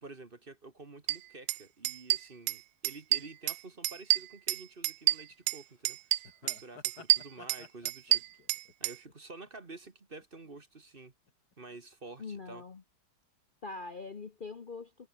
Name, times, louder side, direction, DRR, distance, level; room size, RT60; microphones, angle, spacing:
voice 1, 0.0-8.3 8.8-11.1 11.6-12.6, right 3 dB, 30° right, 1.8 m, -49 dB
sound 1, 1.1-1.2 1.5-1.6 1.8-2.6 2.8-3.6 3.8-5.6 5.9-6.6 6.8-9.0, right 16 dB, 85° right, 1.3 m, -28 dB
sound 2, 5.1-5.3 5.6-5.7 6.2-9.9 10.2-10.6 11.3-11.8 12.1-12.2, left 5 dB, 60° left, 2.9 m, -54 dB
voice 2, 12.2-12.8 13.6-15.1, left 4 dB, 35° left, 1.0 m, -43 dB
omnidirectional pair, 1.9 m